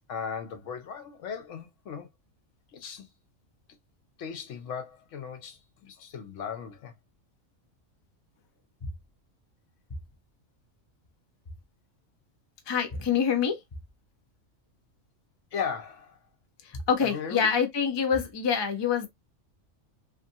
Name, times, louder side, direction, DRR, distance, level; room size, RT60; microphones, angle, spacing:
voice 1, 0.0-2.1 2.7-3.1 4.2-6.9 15.5-16.2 17.0-17.5, left 6 dB, 70° left, 1.0 m, -37 dB
voice 2, 12.7-13.6 16.9-19.1, left 7 dB, 35° left, 0.4 m, -25 dB
2.6 x 2.5 x 2.6 m
omnidirectional pair, 1.4 m